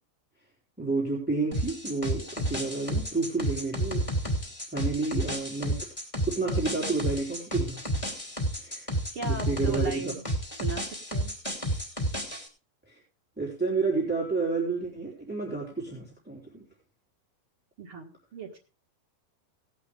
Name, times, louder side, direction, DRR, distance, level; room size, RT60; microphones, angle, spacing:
voice 1, 0.8-4.1 4.7-5.9 6.3-8.0 8.6-8.9 9.2-10.0 12.9-13.0 13.4-16.6, right 3 dB, 5° right, -3 dB, 2.3 m, -30 dB
sound 1, 1.5-12.5, right 1 dB, 20° left, 0.8 m, -31 dB
voice 2, 9.1-10.2 10.6-11.4 17.8-18.6, right 5 dB, 65° right, -2 dB, 1.3 m, -37 dB
18.0 x 8.3 x 3.5 m, 0.34 s
omnidirectional pair, 5.2 m